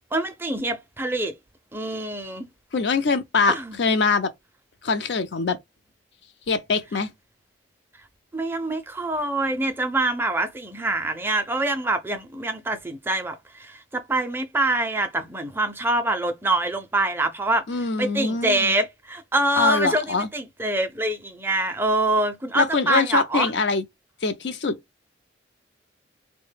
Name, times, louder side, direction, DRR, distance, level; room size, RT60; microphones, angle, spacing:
voice 1, 0.1-1.3 1.7-2.5 3.5-3.8 8.3-17.6 18.0-23.5, right 2 dB, 10° right, 0.4 m, -25 dB
voice 2, 2.7-4.3 4.8-5.6 6.5-7.1 17.7-18.7 19.6-20.3 22.6-23.8 24.2-24.8, left 4 dB, 60° left, 0.5 m, -23 dB
3.8 x 2.1 x 3.2 m
head